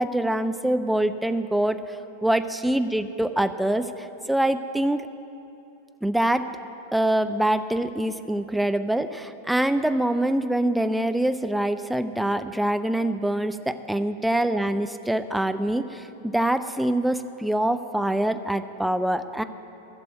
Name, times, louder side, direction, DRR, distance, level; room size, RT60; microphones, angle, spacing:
voice 1, 0.0-3.9 4.3-5.0 6.0-6.5 6.9-19.4, right 1 dB, 5° right, 10 dB, 0.5 m, -24 dB
13.5 x 6.8 x 9.1 m, 2.9 s
figure-of-eight pair, 90°, 0 cm